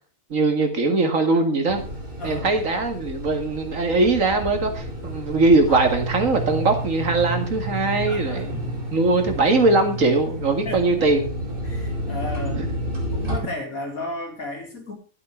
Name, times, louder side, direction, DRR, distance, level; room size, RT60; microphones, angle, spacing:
voice 1, 0.3-1.8 2.2-11.3 12.6-12.7, right 3 dB, 65° right, 6 dB, 2.4 m, -21 dB
sound 1, 1.7-13.4, equal, 40° right, 3.2 m, -30 dB
voice 2, 2.2-2.5 8.1-8.7 10.7-11.1 11.6-12.7 13.1-14.9, left 2 dB, 85° left, 2 dB, 3.6 m, -34 dB
12.5 x 8.1 x 5.8 m, 0.37 s
omnidirectional pair, 1.5 m